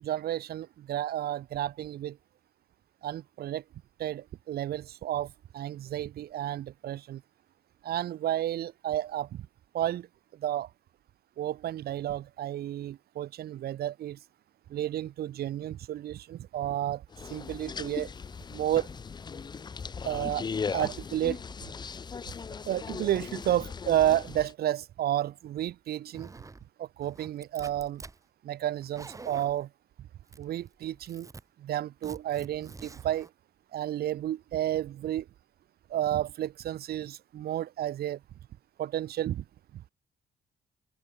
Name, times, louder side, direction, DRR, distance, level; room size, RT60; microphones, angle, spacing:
voice 1, 0.0-2.2 3.0-3.6 4.0-7.2 7.8-9.5 9.7-10.1 10.3-10.7 11.4-14.2 14.7-17.0 17.3-18.1 18.5-18.9 20.0-20.4 20.7-21.4 22.7-26.3 26.8-28.0 28.4-29.7 30.4-31.3 31.6-33.3 33.7-35.3 35.9-38.2 38.8-39.4 39.7-39.9, right 12 dB, 65° right, 0.8 m, -31 dB
sound 1, 17.1-24.5, left 5 dB, 25° left, 0.6 m, -38 dB
Zipper (clothing), 26.1-26.7 27.0-28.2 28.7-29.6 30.3-30.7 30.9-31.4 32.0-33.3, right 3 dB, 20° right, 2.3 m, -47 dB
cardioid pair, 140°, 17 cm